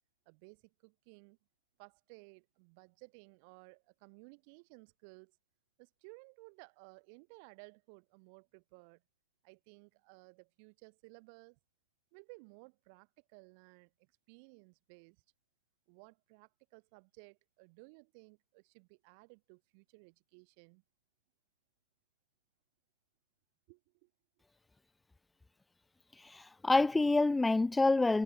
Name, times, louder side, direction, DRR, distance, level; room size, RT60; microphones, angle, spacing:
voice 1, 0.3-1.4 1.8-5.4 5.8-9.0 9.4-11.6 12.1-15.2 15.9-20.8 23.7-24.1, right 36 dB, 35° right, 8.0 m, -58 dB
voice 2, 26.2-28.2, left 3 dB, 5° left, 0.3 m, -27 dB
hypercardioid pair, 160°, 0 cm